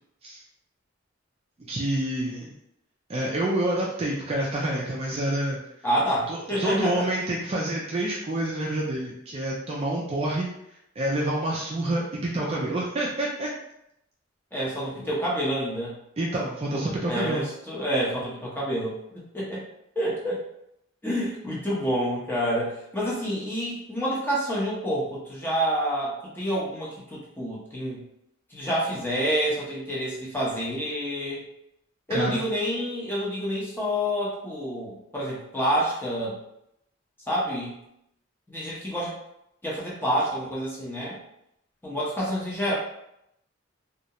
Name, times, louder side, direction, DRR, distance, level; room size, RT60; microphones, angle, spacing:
voice 1, 1.7-2.5 3.1-5.6 6.3-10.5 11.0-13.5 16.2-17.4 32.1-32.4, right 1 dB, 30° right, -4 dB, 0.3 m, -27 dB
voice 2, 5.8-7.1 14.5-15.9 16.7-19.6 20.0-20.4 21.0-28.0 28.5-31.4 32.1-36.4 37.3-37.7 38.5-39.1 39.6-41.2 41.8-42.7, equal, 10° left, -6 dB, 0.6 m, -28 dB
2.3 x 2.0 x 2.8 m, 0.79 s
head